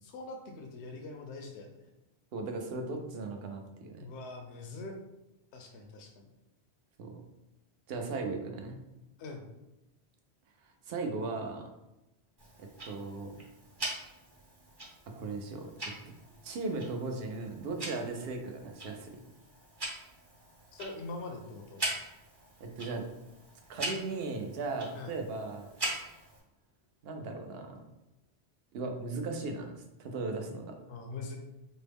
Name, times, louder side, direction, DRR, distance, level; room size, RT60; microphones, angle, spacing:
voice 1, 0.0-1.9 4.0-5.0 5.5-6.2 9.2-9.4 20.7-21.9 24.9-25.2 30.9-31.4, left 3 dB, 85° left, 3 dB, 0.9 m, -43 dB
voice 2, 2.3-4.0 7.0-7.1 7.9-8.8 10.9-11.7 12.6-13.4 15.2-15.7 16.4-19.3 22.6-23.0 23.7-26.2 27.0-27.8 28.7-30.8, right 3 dB, 70° right, 4 dB, 0.8 m, -37 dB
Tick-tock, 12.4-26.4, right 1 dB, 25° right, 0.6 m, -42 dB
4.4 x 2.0 x 3.4 m, 0.98 s
omnidirectional pair, 1.1 m